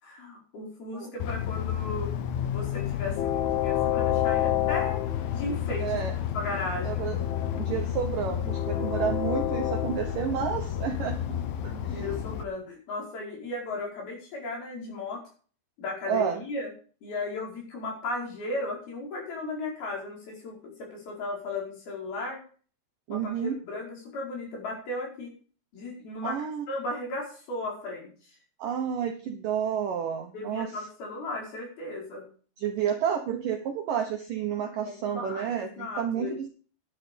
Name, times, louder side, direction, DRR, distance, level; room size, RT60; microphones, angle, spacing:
voice 1, 0.0-2.1 2.5-5.0 5.3-6.0 6.3-7.0 11.7-15.2 15.8-16.7 17.0-22.4 23.1-25.3 25.7-28.1 30.3-32.2 34.8-36.4, left 2 dB, 55° left, -1 dB, 6.6 m, -35 dB
Train, 1.2-12.4, left 11 dB, 75° left, 2.3 m, -29 dB
voice 2, 5.8-6.1 6.8-7.2 7.5-12.2 16.1-16.4 23.1-23.6 26.2-26.6 28.6-30.9 32.6-36.5, right 8 dB, 70° right, 4 dB, 2.1 m, -30 dB
11.0 x 10.5 x 5.2 m, 0.41 s
omnidirectional pair, 5.4 m